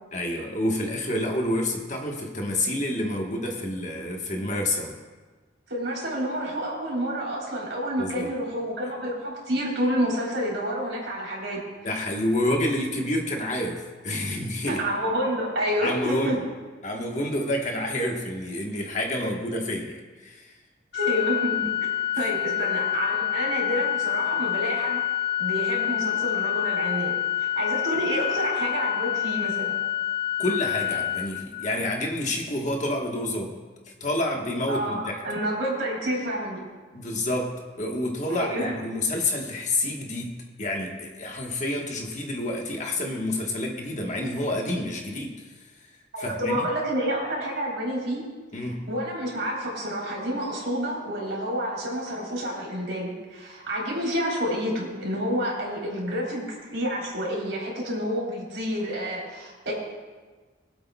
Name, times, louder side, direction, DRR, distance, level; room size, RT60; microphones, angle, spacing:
voice 1, 0.1-4.9 8.0-8.3 11.8-14.8 15.8-16.4 16.8-20.5 30.4-33.6 34.0-35.2 36.9-45.3 46.2-46.7 48.5-48.9, left 1 dB, 40° left, 1 dB, 1.3 m, -28 dB
voice 2, 5.7-11.6 14.7-16.4 20.9-21.8 22.2-25.0 25.4-29.7 34.7-36.6 38.3-38.7 46.1-48.2 48.6-56.4 56.7-59.7, equal, 75° right, -4 dB, 3.7 m, -29 dB
Organ, 20.9-32.0, left 11 dB, 55° left, 0.8 m, -27 dB
23.5 x 8.2 x 2.3 m, 1.4 s
head